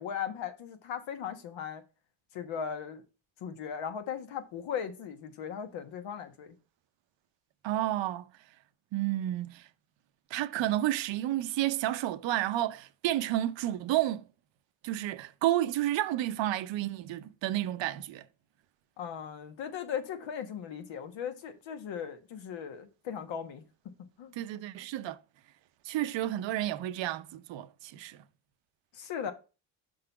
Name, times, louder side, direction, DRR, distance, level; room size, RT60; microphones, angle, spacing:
voice 1, 0.0-1.8 2.3-3.0 3.4-6.6 19.0-23.6 24.2-24.4 28.9-29.3, left 8 dB, 80° left, 1.3 m, -38 dB
voice 2, 7.6-8.3 8.9-9.7 10.3-14.3 14.8-18.2 24.4-25.2 25.8-28.2, right 14 dB, 75° right, 0.7 m, -31 dB
5.7 x 3.8 x 5.7 m
cardioid pair, 80°, 45 cm